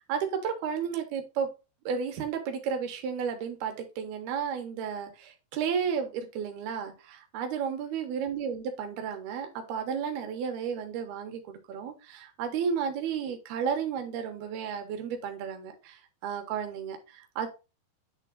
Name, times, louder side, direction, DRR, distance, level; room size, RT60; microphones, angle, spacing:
voice 1, 0.1-1.5 1.9-17.5, right 7 dB, 80° right, 5 dB, 3.2 m, -33 dB
9.8 x 3.5 x 3.8 m, 0.28 s
omnidirectional pair, 4.4 m